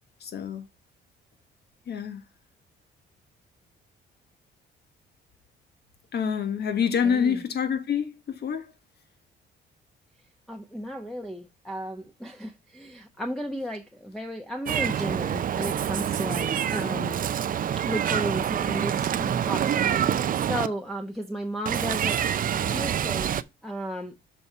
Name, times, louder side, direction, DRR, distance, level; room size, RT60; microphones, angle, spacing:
voice 1, 0.2-0.7 1.9-2.2 6.1-8.6, left 7 dB, 55° left, 1.4 m, -27 dB
voice 2, 7.0-7.4 10.5-17.3 17.8-20.2 20.5-23.3 23.6-24.1, equal, ahead, 0.9 m, -34 dB
Meow, 14.7-20.7 21.7-23.4, right 9 dB, 45° right, 0.5 m, -26 dB
6.9 x 4.2 x 4.4 m
cardioid pair, 90°, 20 cm